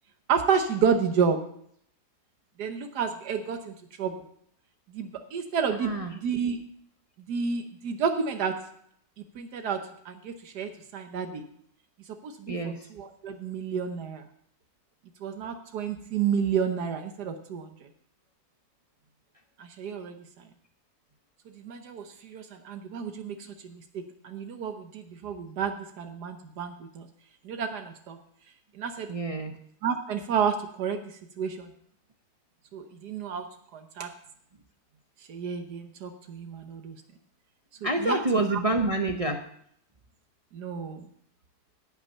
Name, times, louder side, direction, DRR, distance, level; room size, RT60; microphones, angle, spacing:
voice 1, 0.3-1.4 2.6-4.1 4.9-6.6 7.3-8.5 9.3-9.8 10.0-11.4 12.2-14.2 15.2-17.7 19.6-20.2 21.5-23.4 23.6-27.0 27.4-28.2 28.7-29.1 29.8-31.7 32.7-33.5 33.7-34.1 35.3-37.0 37.8-38.6 40.5-41.0, right 6 dB, 85° right, 6 dB, 1.5 m, -30 dB
voice 2, 5.8-6.1 12.5-12.8 29.1-29.6 37.8-39.4, right 2 dB, 30° right, 3 dB, 0.7 m, -27 dB
17.0 x 6.0 x 5.4 m, 0.66 s
omnidirectional pair, 1.7 m